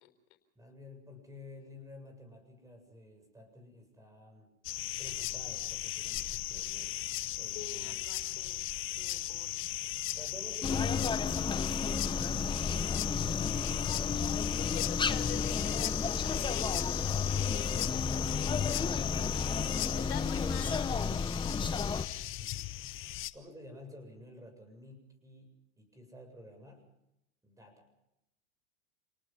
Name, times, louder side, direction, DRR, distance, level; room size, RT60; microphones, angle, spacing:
voice 1, 0.6-4.5 5.0-8.0 10.1-12.1 22.3-22.7 23.3-26.8 27.4-27.9, left 1 dB, 10° right, 6 dB, 7.6 m, -51 dB
sound 1, 4.6-23.3, left 14 dB, 35° left, 1.1 m, -37 dB
voice 2, 7.5-8.6 9.0-9.5 14.6-21.0, left 13 dB, 70° left, 7 dB, 4.2 m, -46 dB
sound 2, 10.6-22.0, left 5 dB, 15° left, 1.1 m, -32 dB
28.0 x 19.0 x 5.7 m, 0.85 s
hypercardioid pair, 110°, 34 cm